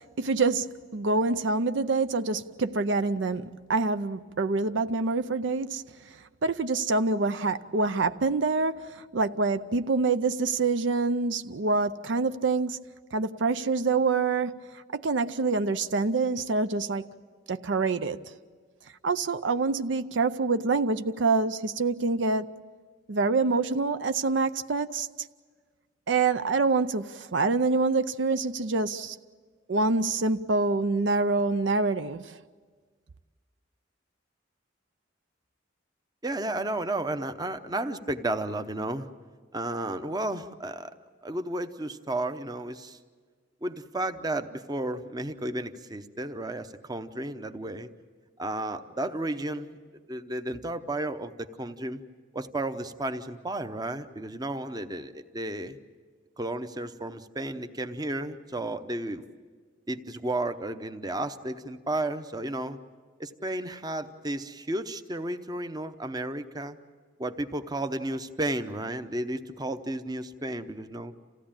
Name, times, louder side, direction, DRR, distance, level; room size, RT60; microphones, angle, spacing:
voice 1, 0.2-5.8 6.4-12.8 13.1-14.6 14.9-17.0 17.5-18.2 19.0-22.5 23.1-25.1 26.1-29.2 29.7-32.3, right 3 dB, 70° right, 0.6 m, -26 dB
voice 2, 36.2-39.1 39.5-40.9 41.2-43.0 43.6-47.9 48.4-49.8 50.1-52.0 52.3-55.8 56.4-59.2 59.9-62.8 63.2-66.8 67.2-71.1, right 1 dB, 20° right, 0.8 m, -33 dB
28.0 x 16.0 x 8.8 m
head